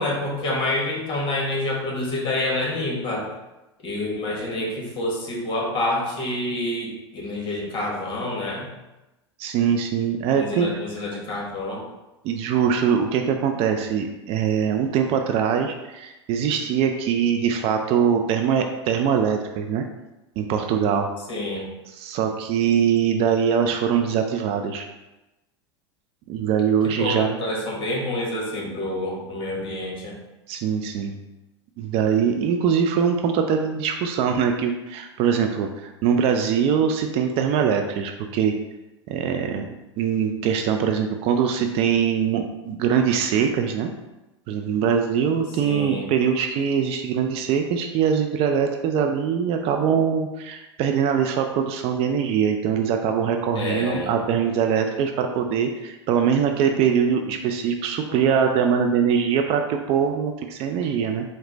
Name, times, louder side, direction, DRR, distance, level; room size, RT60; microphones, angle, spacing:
voice 1, 0.0-3.3 3.8-8.7 10.3-11.8 21.3-21.7 26.8-30.2 45.6-46.1 53.5-54.2 58.1-58.2, left 1 dB, 35° left, -1 dB, 1.3 m, -27 dB
voice 2, 9.4-10.7 12.2-19.8 20.4-21.1 21.9-24.9 26.3-27.3 30.5-31.2 31.8-38.5 39.1-39.7 40.0-43.9 44.5-61.2, right 7 dB, 40° right, 4 dB, 0.4 m, -22 dB
4.8 x 2.1 x 3.9 m, 1.0 s
hypercardioid pair, 90°, 15 cm